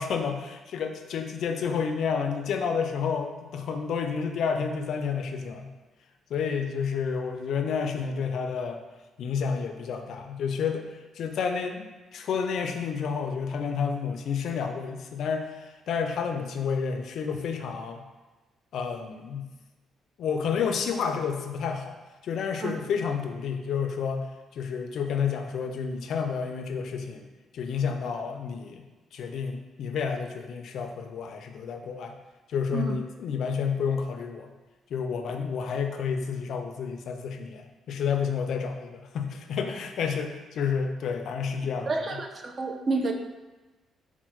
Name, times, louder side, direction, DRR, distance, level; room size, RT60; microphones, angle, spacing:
voice 1, 0.0-5.7 6.3-8.8 9.2-11.8 12.1-18.0 18.7-19.5 20.2-22.0 22.2-27.3 27.5-28.8 29.1-32.2 32.5-34.5 34.9-41.9, left 6 dB, 70° left, 5 dB, 0.3 m, -30 dB
voice 2, 41.9-43.1, right 3 dB, 40° right, 4 dB, 0.4 m, -29 dB
4.1 x 2.0 x 3.0 m, 1.2 s
cardioid pair, 90°, 0 cm